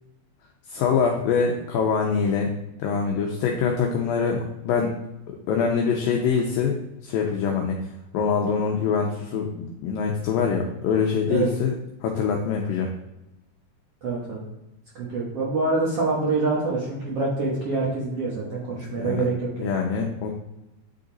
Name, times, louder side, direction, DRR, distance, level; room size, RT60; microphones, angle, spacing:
voice 1, 0.7-2.5 2.8-4.9 5.5-6.8 7.0-7.8 8.1-11.8 12.0-12.9 18.9-19.3 19.6-20.3, left 6 dB, 85° left, 1 dB, 2.0 m, -24 dB
voice 2, 14.0-14.4 14.9-19.7, right 3 dB, 75° right, -5 dB, 1.4 m, -26 dB
9.3 x 3.8 x 3.9 m, 0.96 s
omnidirectional pair, 4.8 m